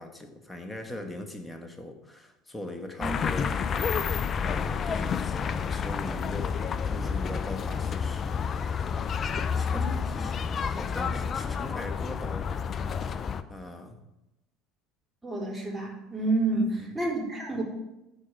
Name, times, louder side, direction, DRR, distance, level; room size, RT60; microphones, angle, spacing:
voice 1, 0.0-6.5 6.9-10.4 10.7-14.0 16.5-16.9, left 1 dB, 10° left, 4 dB, 1.7 m, -41 dB
sound 1, 3.0-13.4, left 6 dB, 40° left, 0.5 m, -30 dB
voice 2, 15.2-17.6, right 2 dB, 10° right, -3 dB, 4.1 m, -29 dB
12.5 x 5.0 x 4.9 m, 0.94 s
hypercardioid pair, 75°, 0 cm